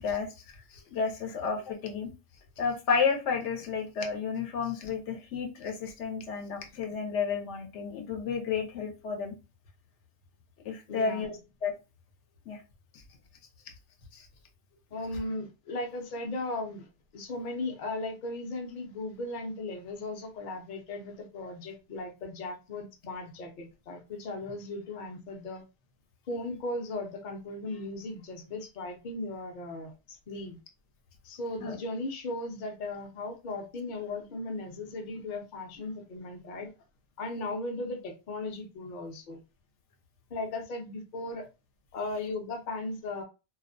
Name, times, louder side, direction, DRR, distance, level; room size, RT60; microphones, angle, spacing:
voice 1, 0.0-2.1 2.6-9.3 10.6-11.7 12.5-12.6 14.1-14.3 31.6-31.8, left 5 dB, 80° left, 0.9 m, -32 dB
voice 2, 10.9-11.3 14.9-25.6 26.3-30.6 31.2-36.7 37.2-39.4 40.3-41.5 41.9-43.2, left 2 dB, 50° left, 0.6 m, -37 dB
2.4 x 2.1 x 2.4 m
omnidirectional pair, 1.2 m